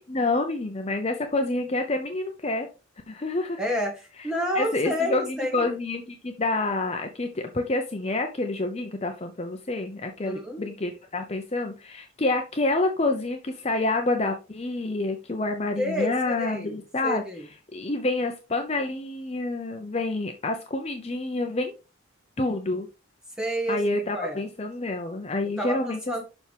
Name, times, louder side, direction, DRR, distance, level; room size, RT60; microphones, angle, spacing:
voice 1, 0.1-2.7 3.1-3.6 4.6-17.2 17.7-21.7 22.4-22.9 23.7-26.0, left 2 dB, 30° left, 4 dB, 0.7 m, -28 dB
voice 2, 3.6-5.6 10.2-10.7 15.8-17.5 23.4-24.4 25.6-26.2, equal, 5° right, 0 dB, 1.9 m, -30 dB
7.0 x 5.9 x 3.5 m, 0.30 s
head